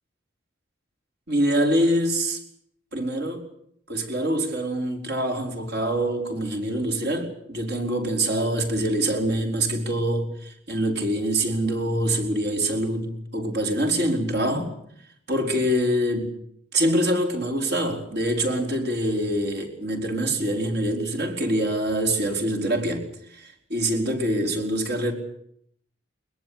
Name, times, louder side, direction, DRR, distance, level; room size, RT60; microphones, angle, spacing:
voice 1, 1.3-2.4 2.9-3.4 3.9-14.7 15.3-16.3 16.7-23.0 23.3-25.1, right 1 dB, 60° right, 3 dB, 5.0 m, -25 dB
22.0 x 21.5 x 8.7 m, 0.69 s
head